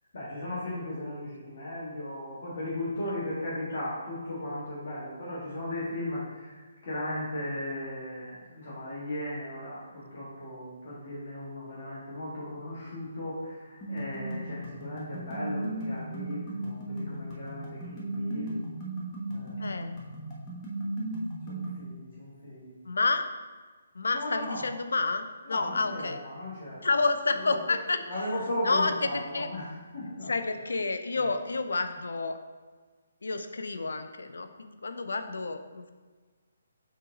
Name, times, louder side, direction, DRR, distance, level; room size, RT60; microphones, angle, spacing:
voice 1, 0.1-18.6 19.3-19.7 21.4-22.7 24.1-24.7 25.5-27.0 27.3-27.8 28.1-30.6 31.1-31.3, left 1 dB, 45° left, -8 dB, 1.6 m, -37 dB
sound 1, 13.8-21.8, right 1 dB, 20° left, 1.2 m, -36 dB
voice 2, 19.6-19.9 22.9-23.2 23.9-26.2 26.8-28.0 28.6-29.5 30.3-32.4 33.2-35.9, left 3 dB, 65° left, 9 dB, 0.5 m, -29 dB
6.3 x 3.9 x 3.9 m, 1.4 s
figure-of-eight pair, 135°, 0 cm